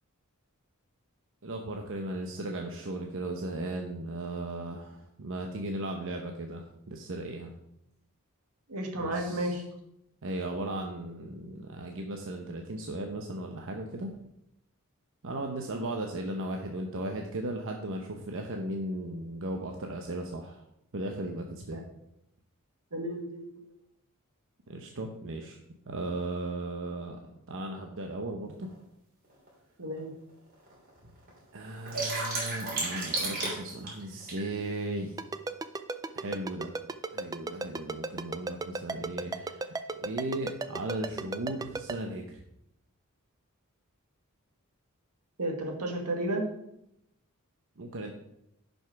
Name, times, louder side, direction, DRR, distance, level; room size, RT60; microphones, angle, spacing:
voice 1, 1.4-7.5 8.9-9.6 10.2-14.1 15.2-20.6 20.9-21.8 24.7-25.6 25.8-27.2 27.5-28.7 31.5-35.2 36.1-36.7 37.1-42.4 47.8-48.1, right 1 dB, 60° right, 3 dB, 0.9 m, -36 dB
voice 2, 8.7-9.6 21.7-21.8 22.9-23.7 29.8-30.1 45.4-46.5, right 1 dB, 85° right, 2 dB, 1.9 m, -32 dB
sound 1, 28.6-28.7 29.5-29.6 30.0-30.1 30.3-30.9 31.3-34.4, right 2 dB, 45° right, 3.3 m, -32 dB
Ringtone, 35.2-41.9, right 3 dB, 15° right, 0.4 m, -33 dB
10.5 x 5.4 x 4.6 m, 0.79 s
head